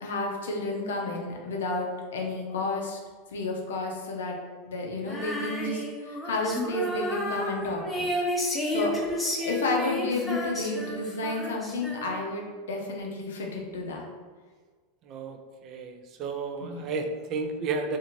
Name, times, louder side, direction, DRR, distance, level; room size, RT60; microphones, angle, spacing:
voice 1, 0.0-3.0 3.3-4.4 4.7-8.1 8.7-8.9 9.4-14.0 16.6-16.9, left 2 dB, 80° left, 0 dB, 0.5 m, -31 dB
Female singing, 5.1-12.4, left 1 dB, 10° left, 0.6 m, -31 dB
voice 2, 15.1-15.4 15.6-18.0, right 4 dB, 45° right, 5 dB, 0.3 m, -32 dB
2.6 x 2.4 x 2.9 m, 1.5 s
hypercardioid pair, 90°, 0 cm